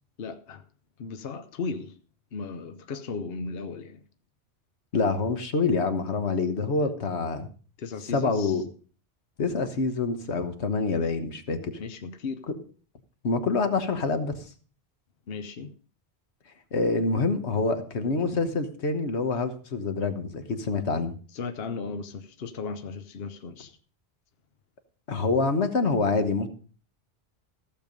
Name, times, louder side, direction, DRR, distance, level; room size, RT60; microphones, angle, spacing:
voice 1, 0.2-0.6 1.0-2.0 2.3-4.0 6.8-6.9 7.8-8.6 11.8-12.4 15.3-15.7 21.3-23.8, left 4 dB, 65° left, 1.0 m, -36 dB
voice 2, 4.9-7.5 8.1-8.6 9.4-11.8 13.2-14.4 16.7-21.1 25.1-26.5, left 3 dB, 90° left, 1.5 m, -26 dB
15.0 x 7.0 x 5.2 m
omnidirectional pair, 1.1 m